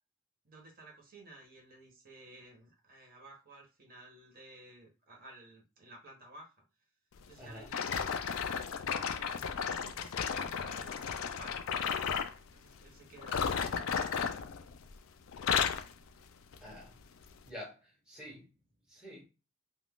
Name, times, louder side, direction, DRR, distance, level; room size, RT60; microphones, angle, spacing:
voice 1, 0.4-6.5 7.2-8.4 8.9-11.9 12.5-14.4, right 2 dB, 45° right, 1.0 m, -55 dB
voice 2, 7.4-7.7 16.6-17.0 17.4-18.5 18.9-19.3, equal, 5° right, 0.9 m, -48 dB
sound 1, 7.7-12.4 13.2-15.0 15.3-15.9 16.5-16.7 17.4-17.5, left 7 dB, 70° left, 0.4 m, -34 dB
2.5 x 2.3 x 3.5 m
head